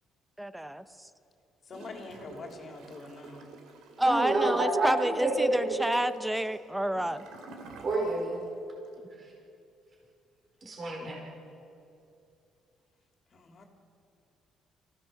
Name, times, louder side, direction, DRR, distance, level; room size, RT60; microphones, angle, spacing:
voice 1, 0.4-1.1 4.0-7.3, right 1 dB, 5° right, 12 dB, 0.8 m, -29 dB
voice 2, 1.6-3.5 13.3-13.6, left 3 dB, 40° left, 3 dB, 3.0 m, -45 dB
Gurgling / Toilet flush, 1.7-8.5 8.8-8.9, right 4 dB, 80° right, 2.5 m, -50 dB
voice 3, 4.0-5.8 7.8-8.4 9.2-9.3 10.6-11.3, right 2 dB, 35° right, 0 dB, 4.5 m, -29 dB
26.5 x 15.5 x 7.2 m, 2.6 s
cardioid pair, 125°, 0 cm